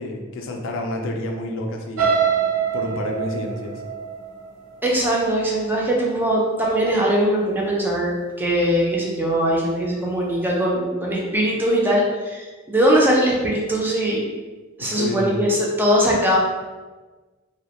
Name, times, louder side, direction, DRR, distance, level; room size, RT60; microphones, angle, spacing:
voice 1, 0.0-2.0 2.7-3.8 14.8-15.5, left 1 dB, 65° left, 2 dB, 0.3 m, -29 dB
sound 1, 2.0-5.9 6.4-6.7 7.1-7.2, right 7 dB, 75° right, 0.5 m, -25 dB
voice 2, 4.8-14.2 14.8-16.4, equal, 10° right, -3 dB, 0.3 m, -21 dB
2.2 x 2.0 x 2.8 m, 1.3 s
head